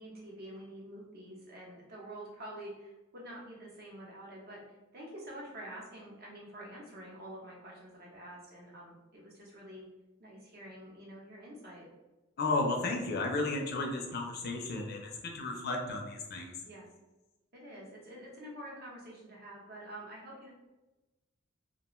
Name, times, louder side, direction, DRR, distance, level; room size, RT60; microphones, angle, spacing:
voice 1, 0.0-4.6 4.9-9.9 10.2-11.9 16.6-16.9 17.5-20.5, right 1 dB, 50° right, -4 dB, 0.8 m, -47 dB
voice 2, 12.4-16.5, left 2 dB, 50° left, 2 dB, 0.4 m, -33 dB
2.4 x 2.2 x 3.0 m, 1.1 s
head